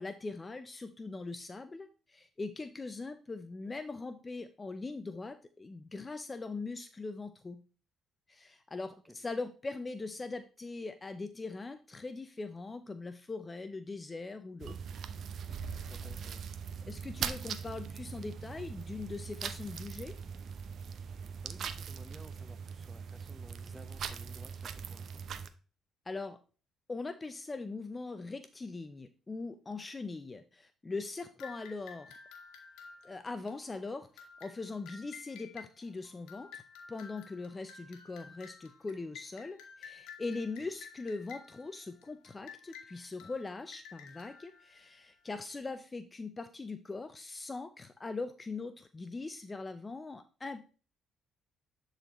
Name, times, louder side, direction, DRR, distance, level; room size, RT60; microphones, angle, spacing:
voice 1, 0.0-7.6 8.3-14.8 15.8-15.9 16.9-20.1 26.1-26.4 26.9-32.1 33.0-36.6 36.9-50.7, left 3 dB, 25° left, 10 dB, 0.5 m, -41 dB
sound 1, 14.6-25.5, right 6 dB, 60° right, 0.6 m, -41 dB
voice 2, 15.9-16.4 21.4-25.2 40.6-40.7, equal, 10° right, 9 dB, 1.0 m, -55 dB
sound 2, 31.4-45.5, left 6 dB, 90° left, 1.3 m, -53 dB
11.0 x 4.0 x 3.0 m, 0.36 s
supercardioid pair, 75°, 0 cm